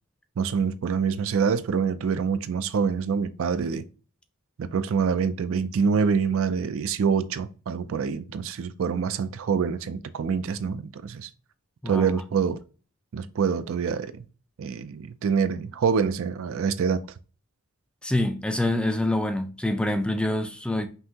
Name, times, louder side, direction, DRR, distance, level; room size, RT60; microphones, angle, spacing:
voice 1, 0.4-3.9 4.6-11.3 11.9-12.6 13.1-14.2 14.6-17.0, right 6 dB, 65° right, 0.4 m, -26 dB
voice 2, 18.0-20.9, left 1 dB, 5° left, 0.3 m, -26 dB
5.5 x 2.8 x 2.8 m
head